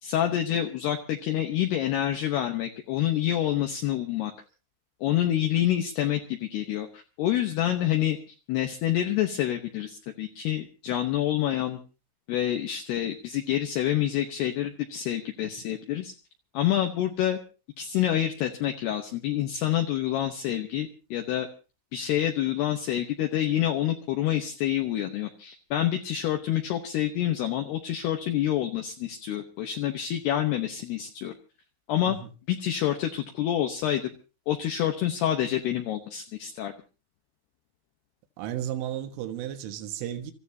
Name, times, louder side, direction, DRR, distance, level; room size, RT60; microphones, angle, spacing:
voice 1, 0.0-4.3 5.0-8.2 8.5-11.8 12.3-16.1 16.5-17.4 17.8-21.5 21.9-31.3 31.9-32.2 32.5-34.0 34.5-36.7, left 11 dB, 75° left, 2.7 m, -27 dB
voice 2, 38.4-40.3, right 11 dB, 85° right, 3.8 m, -33 dB
29.0 x 14.5 x 2.7 m
omnidirectional pair, 5.6 m